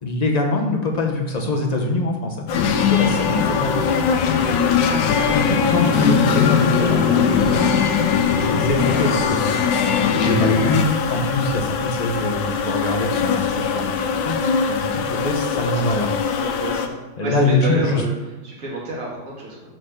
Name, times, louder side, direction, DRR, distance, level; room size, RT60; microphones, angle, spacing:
voice 1, 0.0-3.9 5.1-7.7 8.5-9.4 10.2-14.4 14.7-16.1 17.2-18.0, left 2 dB, 30° left, 1 dB, 0.8 m, -23 dB
sound 1, 2.5-16.9, left 6 dB, 85° left, 1.4 m, -24 dB
sound 2, 2.5-10.9, left 7 dB, 65° left, 1.2 m, -20 dB
voice 2, 4.8-5.4 13.4-13.7 15.5-15.9 16.4-18.1 18.4-19.6, right 1 dB, 45° right, -4 dB, 2.2 m, -30 dB
6.1 x 5.3 x 6.5 m, 1.1 s
omnidirectional pair, 2.0 m